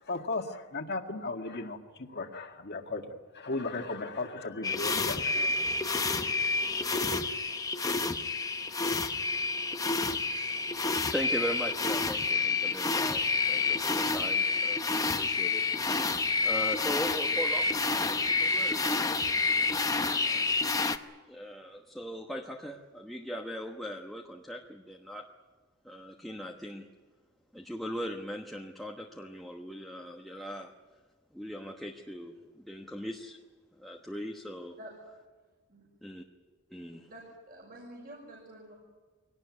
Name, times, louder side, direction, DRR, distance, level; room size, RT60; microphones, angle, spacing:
voice 1, 0.0-5.5, left 3 dB, 50° left, 4 dB, 1.9 m, -36 dB
sound 1, 4.6-21.0, left 3 dB, 15° left, 0.8 m, -29 dB
voice 2, 11.1-15.6 16.4-19.2 20.0-20.5 21.3-25.2 25.8-26.9 27.5-30.7 31.3-33.4 33.7-34.8 36.0-36.2 36.7-37.1, equal, ahead, 0 dB, 1.2 m, -39 dB
voice 3, 37.1-38.8, right 1 dB, 45° right, -2 dB, 5.9 m, -48 dB
23.0 x 18.5 x 9.7 m, 1.4 s
head